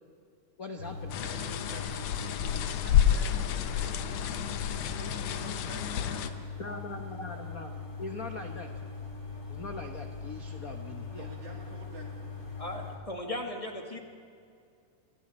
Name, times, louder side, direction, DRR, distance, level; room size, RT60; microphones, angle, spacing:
voice 1, 0.6-1.2 6.6-7.7 8.0-8.7 9.5-11.3, left 3 dB, 85° left, 4 dB, 0.7 m, -41 dB
sound 1, 0.8-13.0, left 4 dB, 40° left, 4.0 m, -41 dB
sound 2, 1.1-6.3, left 10 dB, 70° left, 1.9 m, -29 dB
voice 2, 1.2-4.2 4.8-6.3 7.3-7.4 11.2-12.1, right 3 dB, 75° right, -1 dB, 4.6 m, -48 dB
voice 3, 12.6-14.0, left 1 dB, 15° left, 2 dB, 1.4 m, -37 dB
27.5 x 22.5 x 4.3 m, 2.3 s
omnidirectional pair, 3.3 m